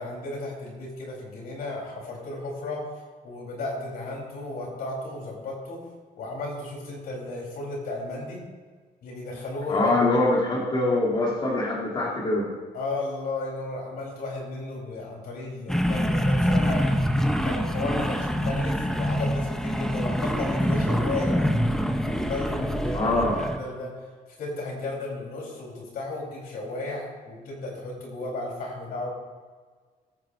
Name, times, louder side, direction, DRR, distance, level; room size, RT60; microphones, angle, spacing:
voice 1, 0.0-5.9 6.2-8.4 9.0-10.0 12.7-21.4 22.0-24.1 24.4-29.1, left 2 dB, 75° left, -2 dB, 4.2 m, -34 dB
voice 2, 9.7-12.5 22.9-23.4, left 2 dB, 35° left, -7 dB, 3.1 m, -23 dB
sound 1, 15.7-23.6, equal, 5° left, 0.8 m, -25 dB
21.5 x 9.5 x 2.7 m, 1.5 s
cardioid pair, 135°, 16 cm